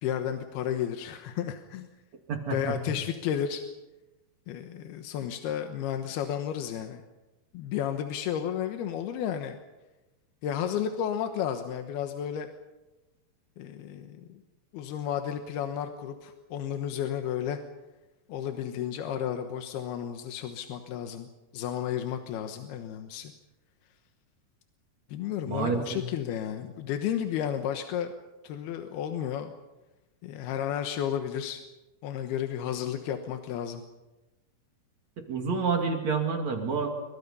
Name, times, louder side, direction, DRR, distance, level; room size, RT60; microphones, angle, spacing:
voice 1, 0.0-1.9 2.5-3.6 4.5-7.0 7.5-9.6 10.4-12.5 13.6-14.4 14.7-17.6 18.3-21.3 21.5-23.3 25.1-28.1 28.4-29.5 30.2-31.6 32.0-33.8, left 9 dB, 90° left, 6 dB, 3.2 m, -32 dB
voice 2, 2.3-3.0 25.5-26.0 35.3-36.9, right 5 dB, 50° right, 3 dB, 3.5 m, -29 dB
29.5 x 24.5 x 5.6 m, 1.1 s
omnidirectional pair, 4.4 m